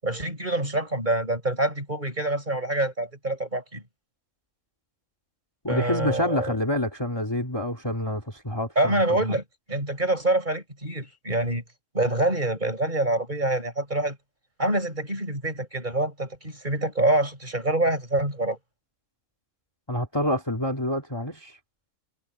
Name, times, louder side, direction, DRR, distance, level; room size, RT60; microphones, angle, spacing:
voice 1, 0.0-3.8 5.7-6.5 8.7-11.6 11.9-14.2 14.6-18.6, right 1 dB, 30° right, 6.7 m, -26 dB
voice 2, 5.6-9.4 19.9-21.6, left 1 dB, 15° left, 2.4 m, -27 dB
omnidirectional pair, 1.5 m